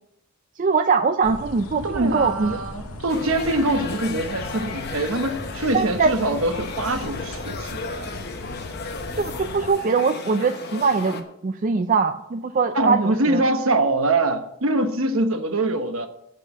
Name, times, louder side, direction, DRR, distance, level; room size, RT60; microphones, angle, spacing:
voice 1, 0.6-2.6 5.7-6.1 9.2-13.5, right 4 dB, 35° right, 0.4 m, -22 dB
sound 1, 1.2-9.7, left 1 dB, 85° left, 1.6 m, -37 dB
voice 2, 1.8-8.1 12.7-16.1, right 2 dB, 65° right, 1.1 m, -24 dB
sound 2, 3.1-11.2, left 4 dB, 45° left, 1.1 m, -35 dB
8.3 x 6.7 x 7.1 m
head